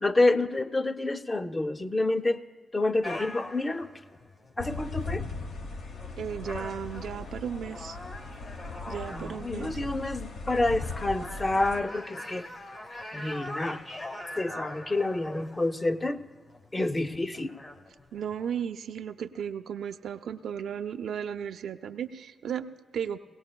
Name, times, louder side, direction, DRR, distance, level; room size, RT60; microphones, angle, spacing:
voice 1, 0.0-2.4 2.7-3.9 4.6-5.2 9.1-12.5 13.1-13.8 14.4-16.2 16.7-17.5, left 2 dB, 25° left, 10 dB, 0.5 m, -28 dB
sound 1, 3.0-18.6, left 1 dB, 45° left, 1.0 m, -43 dB
sound 2, 4.6-11.8, left 3 dB, 80° left, 0.9 m, -38 dB
voice 2, 6.2-8.0 8.9-9.8 18.1-23.2, right 8 dB, 75° right, 8 dB, 0.4 m, -35 dB
18.5 x 17.5 x 2.2 m, 1.5 s
supercardioid pair, 55°, 0 cm